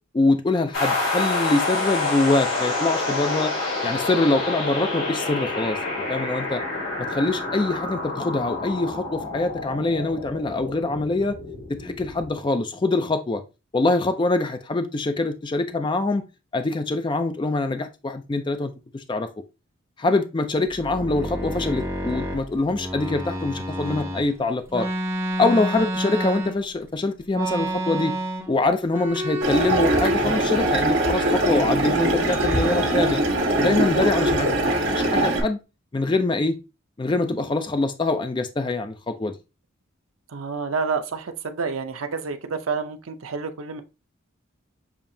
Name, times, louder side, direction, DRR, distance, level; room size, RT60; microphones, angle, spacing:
voice 1, 0.1-3.5 3.8-6.6 7.0-11.4 11.8-13.4 13.7-16.2 16.5-19.3 20.0-24.9 25.4-28.1 28.5-33.2 33.6-35.6 35.9-36.6 37.0-39.3, left 2 dB, 20° left, 0.3 m, -24 dB
sound 1, 0.7-12.3, left 2 dB, 70° left, 2.6 m, -28 dB
sound 2, 20.7-24.2 24.7-26.8 27.3-28.6 28.8-30.2 30.5-31.7 32.2-33.1 33.4-34.6, right 1 dB, 10° right, 0.9 m, -30 dB
sound 3, 29.4-35.4, right 1 dB, 55° right, 1.6 m, -22 dB
voice 2, 40.3-43.8, right 4 dB, 85° right, 0.6 m, -29 dB
7.0 x 2.8 x 2.7 m
head